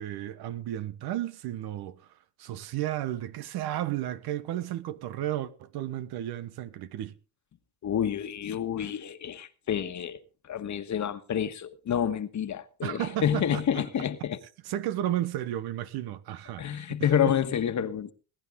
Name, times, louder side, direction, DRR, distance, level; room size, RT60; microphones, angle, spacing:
voice 1, 0.0-2.0 2.4-7.1 12.8-13.8 14.6-17.1, right 13 dB, 70° right, 1.3 m, -33 dB
voice 2, 7.8-14.4 16.6-18.1, left 9 dB, 45° left, 1.5 m, -29 dB
21.0 x 10.5 x 3.8 m
supercardioid pair, 75°, 40 cm